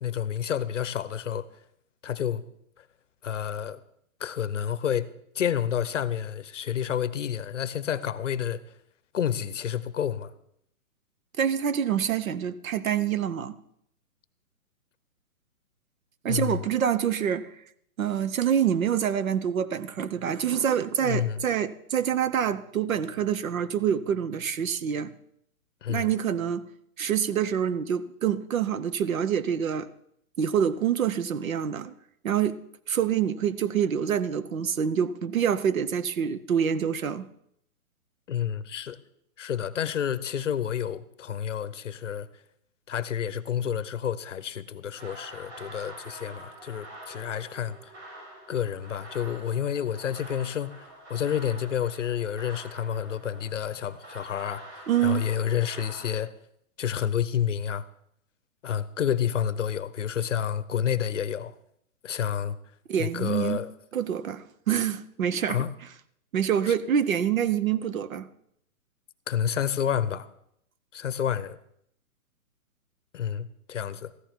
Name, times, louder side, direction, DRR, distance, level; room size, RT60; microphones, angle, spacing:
voice 1, 0.0-1.5 2.0-2.4 2.8-2.9 3.2-3.8 4.2-5.1 5.3-8.6 9.1-10.3 16.3-16.6 21.0-21.4 25.8-26.1 38.3-39.0 39.4-42.3 42.9-47.9 48.5-56.3 56.8-57.9 58.6-61.5 62.0-62.6 63.0-63.7 65.5-65.7 66.7-66.8 69.3-70.3 70.9-71.6 73.1-74.1, left 9 dB, 55° left, 0.7 m, -29 dB
voice 2, 11.4-13.6 16.2-17.5 18.0-25.1 25.9-26.6 27.0-29.9 30.4-31.9 32.2-32.6 32.9-37.3 54.9-55.2 62.9-63.6 63.9-65.7 66.3-68.3, right 8 dB, 65° right, 0.8 m, -26 dB
sound 1, 45.0-56.1, right 1 dB, 50° right, 4.9 m, -46 dB
14.5 x 11.5 x 4.5 m
hypercardioid pair, 175°, 43 cm